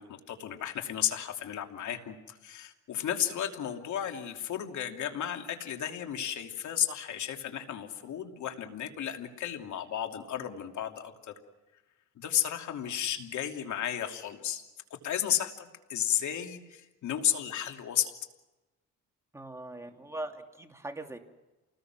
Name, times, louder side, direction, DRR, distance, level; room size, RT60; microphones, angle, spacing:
voice 1, 0.0-11.1 12.2-14.6 15.0-18.1, left 10 dB, 75° left, 4 dB, 2.9 m, -33 dB
voice 2, 19.3-21.2, right 2 dB, 10° right, 4 dB, 2.8 m, -40 dB
28.5 x 20.0 x 6.2 m, 1.1 s
cardioid pair, 90°, 30 cm